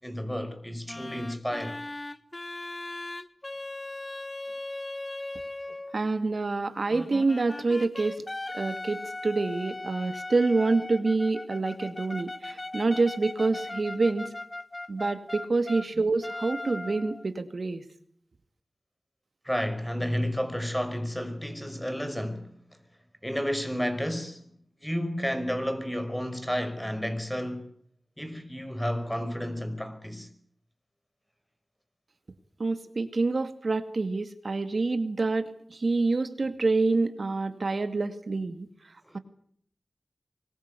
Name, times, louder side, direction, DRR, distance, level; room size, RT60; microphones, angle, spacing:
voice 1, 0.0-1.8 19.4-22.5 23.2-24.4 24.8-27.7 28.2-30.3 39.0-39.2, equal, 5° left, 5.4 m, -31 dB
sound 1, 0.9-6.0 6.9-15.9 16.2-17.3, left 2 dB, 30° left, 1.5 m, -38 dB
voice 2, 5.9-8.2 8.5-14.3 14.9-17.8 32.6-39.2, right 3 dB, 65° right, 2.2 m, -27 dB
24.0 x 21.5 x 8.4 m
cardioid pair, 50°, 0 cm